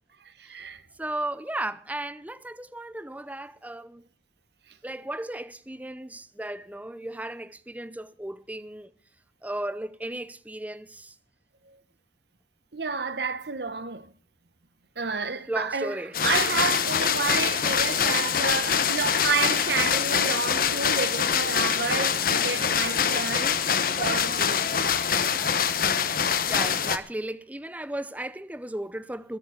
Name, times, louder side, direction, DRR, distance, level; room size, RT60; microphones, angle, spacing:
voice 1, 0.4-0.8 11.7-11.8 12.7-14.1 15.0-24.9, right 4 dB, 70° right, 1.2 m, -30 dB
voice 2, 1.0-4.0 4.8-8.9 9.4-11.1 15.5-16.2 16.5-17.0 26.5-29.4, right 1 dB, 10° right, 0.7 m, -35 dB
sound 1, 16.1-27.0, left 7 dB, 55° left, 1.0 m, -24 dB
21.0 x 7.1 x 6.7 m
head